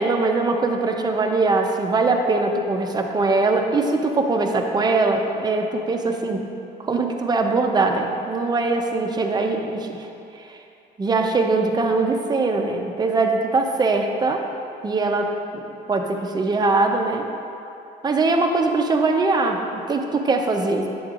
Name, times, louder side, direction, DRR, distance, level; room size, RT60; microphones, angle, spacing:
voice 1, 0.0-6.5 6.8-10.1 11.0-14.4 14.8-15.6 15.9-17.2 18.0-20.9, right 3 dB, 25° right, 3 dB, 0.6 m, -21 dB
8.7 x 7.7 x 2.5 m, 2.7 s
cardioid pair, 110°, 17 cm